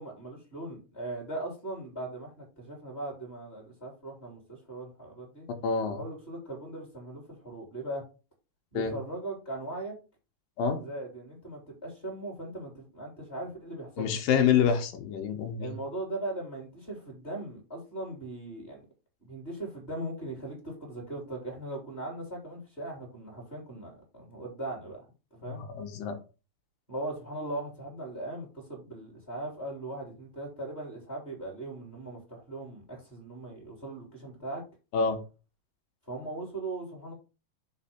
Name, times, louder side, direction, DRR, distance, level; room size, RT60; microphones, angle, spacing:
voice 1, 0.0-5.5 6.0-8.0 8.7-9.9 10.8-14.2 15.6-18.8 19.2-25.1 25.4-25.6 26.9-34.6 36.1-37.1, right 2 dB, 15° left, 2.9 m, -39 dB
voice 2, 5.6-6.0 8.7-8.9 10.6-10.8 14.0-15.7 25.5-26.2 34.9-35.2, left 7 dB, 70° left, 2.6 m, -27 dB
6.5 x 4.0 x 5.8 m
omnidirectional pair, 4.6 m